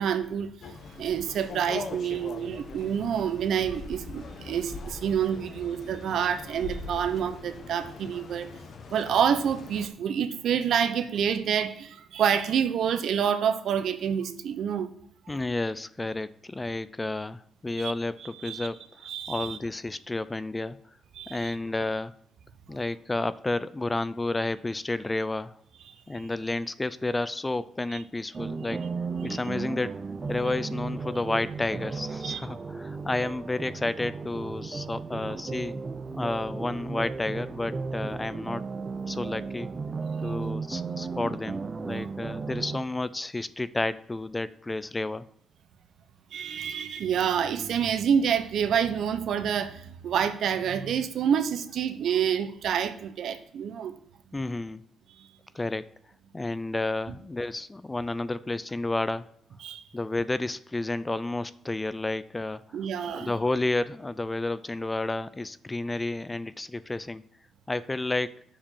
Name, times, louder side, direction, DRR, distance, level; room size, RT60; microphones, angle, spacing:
voice 1, 0.0-8.5 8.9-14.9 15.3-15.4 17.8-17.9 18.2-18.7 19.0-19.6 21.2-21.5 27.9-28.0 29.3-29.4 32.2-32.4 46.3-53.9 55.2-55.3 59.6-59.8 62.7-63.3, right 8 dB, 70° right, 9 dB, 0.9 m, -28 dB
sound 1, 0.6-9.9, left 4 dB, 55° left, 1.1 m, -42 dB
voice 2, 15.3-18.8 19.3-20.8 21.3-22.2 22.7-25.5 26.1-28.8 29.2-29.9 30.3-35.8 36.1-38.6 39.1-39.7 40.2-45.3 54.3-54.8 55.5-55.9 56.3-59.3 59.9-62.8 63.1-67.2 67.7-68.4, left 2 dB, 20° left, 17 dB, 0.4 m, -31 dB
sound 2, 28.3-42.8, right 4 dB, 30° right, 0.6 m, -35 dB
7.0 x 5.2 x 7.1 m, 0.66 s
cardioid pair, 90°, 0 cm